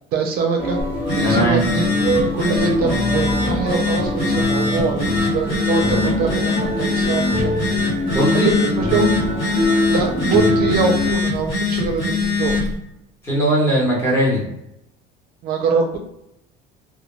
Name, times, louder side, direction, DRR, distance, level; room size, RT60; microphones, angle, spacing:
voice 1, 0.1-0.8 1.2-7.5 8.3-9.1 9.9-12.5 15.4-16.0, right 4 dB, 55° right, 2 dB, 0.5 m, -23 dB
sound 1, 0.6-11.1, left 1 dB, 10° right, 0.6 m, -24 dB
Telephone, 0.8-12.7, left 3 dB, 55° left, 1.3 m, -23 dB
voice 2, 1.2-1.6 8.1-8.5 13.2-14.5, right 1 dB, 15° left, -5 dB, 0.9 m, -19 dB
2.2 x 2.1 x 3.0 m, 0.81 s
cardioid pair, 160°, 19 cm